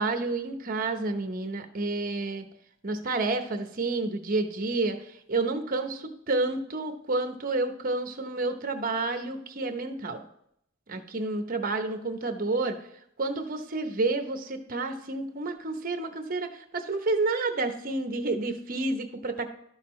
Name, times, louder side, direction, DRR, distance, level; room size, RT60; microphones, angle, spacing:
voice 1, 0.0-2.4 2.8-5.0 5.3-10.2 10.9-12.8 13.2-19.5, right 3 dB, 45° right, 7 dB, 0.8 m, -29 dB
11.5 x 6.5 x 3.2 m, 0.73 s
head